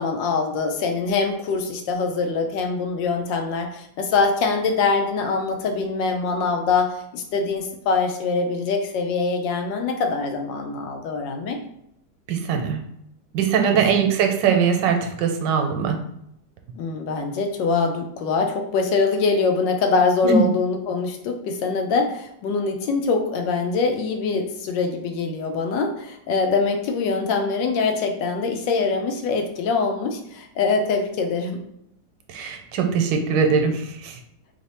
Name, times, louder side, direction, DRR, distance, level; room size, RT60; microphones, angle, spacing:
voice 1, 0.0-11.6 13.7-13.8 16.8-31.6, left 4 dB, 90° left, 4 dB, 1.3 m, -23 dB
voice 2, 12.3-12.8 13.3-16.0 20.2-20.4 32.3-34.2, right 6 dB, 85° right, 4 dB, 1.3 m, -21 dB
3.2 x 2.1 x 4.1 m, 0.76 s
omnidirectional pair, 1.9 m